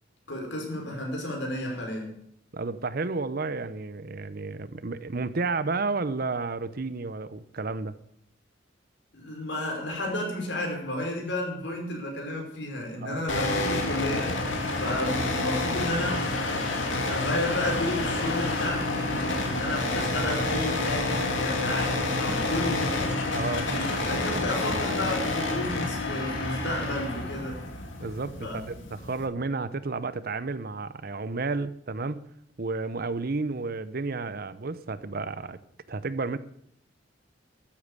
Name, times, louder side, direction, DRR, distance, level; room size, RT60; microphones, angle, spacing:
voice 1, 0.3-2.1 9.1-14.4 14.7-16.2 16.9-23.2 23.7-27.6 28.4-28.6, left 1 dB, 65° left, 1 dB, 5.1 m, -32 dB
voice 2, 2.5-8.0 13.0-13.2 23.3-23.7 28.0-32.2 32.6-35.6 35.9-36.4, right 3 dB, 50° right, 15 dB, 0.8 m, -31 dB
sound 1, 13.3-29.3, left 2 dB, 85° left, 3.0 m, -29 dB
13.5 x 8.8 x 8.4 m, 0.69 s
head